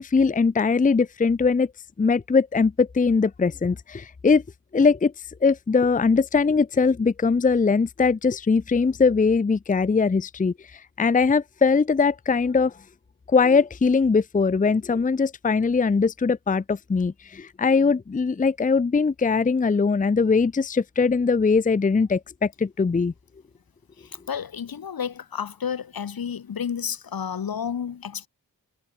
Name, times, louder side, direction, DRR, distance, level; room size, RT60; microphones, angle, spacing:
voice 1, 0.0-1.7 2.0-4.4 4.7-5.1 5.4-12.7 13.3-23.1, left 4 dB, 25° left, 0.6 m, -21 dB
voice 2, 24.0-28.3, left 7 dB, 80° left, 2.1 m, -31 dB
wide cardioid pair, 80°, 35 cm